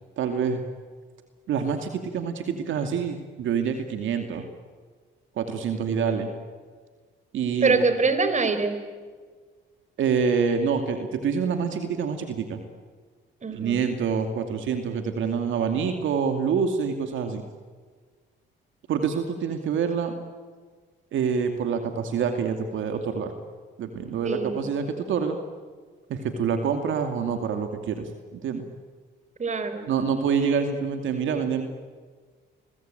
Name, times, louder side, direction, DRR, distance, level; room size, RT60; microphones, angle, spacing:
voice 1, 0.2-0.6 1.5-4.5 5.4-6.3 7.3-7.8 10.0-12.6 13.5-17.4 18.9-20.1 21.1-23.3 23.8-25.4 26.1-28.7 29.9-31.6, right 6 dB, 75° right, 6 dB, 2.5 m, -26 dB
voice 2, 7.6-8.8 13.4-13.8 24.2-24.7 29.4-29.9, right 4 dB, 35° right, 9 dB, 4.4 m, -24 dB
29.5 x 22.0 x 9.1 m, 1.5 s
cardioid pair, 90°, 20 cm